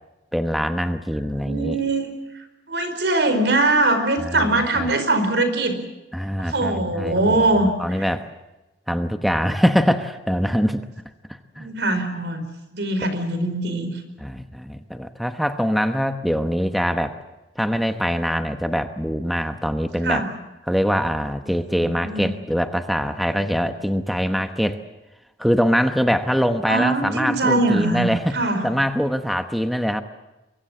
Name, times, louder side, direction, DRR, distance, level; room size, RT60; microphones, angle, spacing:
voice 1, 0.3-1.8 4.2-4.9 6.1-7.4 7.8-8.3 8.9-10.9 11.3-11.7 14.2-17.2 17.6-20.2 20.7-24.8 25.4-30.0, equal, ahead, 7 dB, 1.0 m, -23 dB
voice 2, 1.3-2.1 2.7-5.7 6.4-7.7 11.6-12.4 12.7-13.9 20.0-20.3 21.8-22.3 26.7-28.1 28.3-28.6, right 2 dB, 70° right, 9 dB, 4.7 m, -21 dB
24.0 x 23.0 x 7.3 m, 1.0 s
head